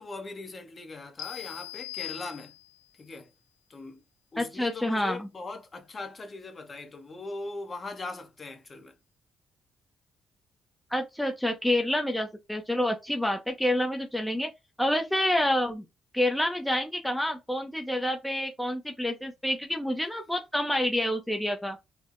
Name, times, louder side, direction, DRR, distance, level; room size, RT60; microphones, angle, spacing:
voice 1, 0.0-2.6 2.9-3.3 3.7-4.0 4.3-9.0, left 3 dB, 35° left, 0.8 m, -40 dB
sound 1, 1.2-2.9, left 16 dB, 90° left, 0.3 m, -40 dB
voice 2, 4.4-5.3 10.9-14.5 14.8-15.8 16.1-21.8, left 1 dB, 5° left, 0.5 m, -28 dB
4.3 x 2.0 x 2.4 m
cardioid pair, 90°, 0 cm